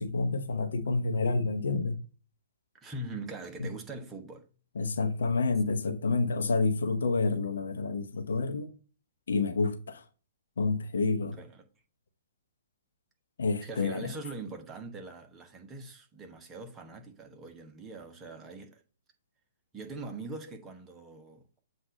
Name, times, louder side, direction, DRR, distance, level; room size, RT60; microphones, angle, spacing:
voice 1, 0.0-2.0 3.6-3.7 4.8-8.7 9.3-10.0 10.6-11.4 13.4-14.1, left 3 dB, 60° left, 0.8 m, -29 dB
voice 2, 2.8-4.5 11.4-11.7 13.6-18.8 19.7-21.6, right 2 dB, 15° right, 1.1 m, -42 dB
7.8 x 2.6 x 5.1 m
figure-of-eight pair, 120°, 0 cm